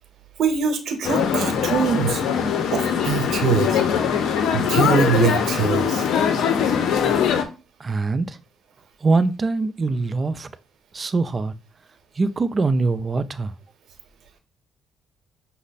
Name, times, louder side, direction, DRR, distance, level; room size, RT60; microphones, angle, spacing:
voice 1, 0.4-2.2 2.7-3.8 4.5-6.1, right 6 dB, 70° right, 0.9 m, -23 dB
sound 1, 1.0-7.4, left 7 dB, 75° left, 0.6 m, -21 dB
voice 2, 7.8-8.4 9.0-10.5 10.9-11.5 12.2-13.5, right 3 dB, 35° right, 0.4 m, -23 dB
6.1 x 2.1 x 4.0 m
cardioid pair, 90°, 0 cm